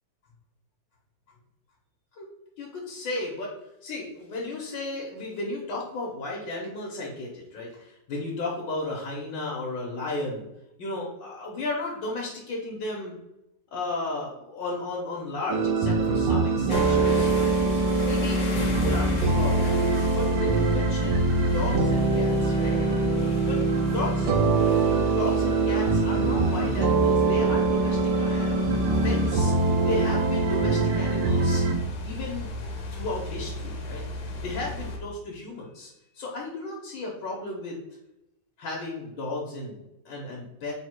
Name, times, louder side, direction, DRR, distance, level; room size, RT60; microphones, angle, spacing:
voice 1, 2.6-3.5 3.8-10.5 10.8-13.2 13.7-17.3 18.0-22.7 23.4-23.6 23.9-24.3 25.1-29.5 29.8-31.6 32.0-32.5 32.9-34.0 34.4-37.8 38.6-40.7, left 2 dB, 80° left, -3 dB, 1.5 m, -34 dB
sound 1, 15.5-31.7, right 3 dB, 85° right, 1.3 m, -23 dB
sound 2, 16.7-35.0, left 2 dB, 60° left, 1.0 m, -33 dB
3.8 x 2.1 x 4.5 m, 0.89 s
omnidirectional pair, 2.0 m